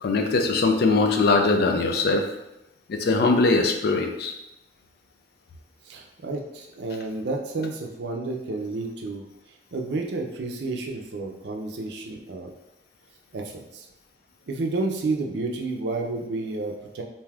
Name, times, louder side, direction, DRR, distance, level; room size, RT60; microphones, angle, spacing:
voice 1, 0.0-2.2 2.9-4.3, left 3 dB, 60° left, 4 dB, 0.4 m, -21 dB
voice 2, 5.8-9.3 9.7-12.5 13.3-13.9 14.5-17.0, right 3 dB, 65° right, 2 dB, 0.4 m, -30 dB
2.6 x 2.3 x 3.3 m, 0.89 s
head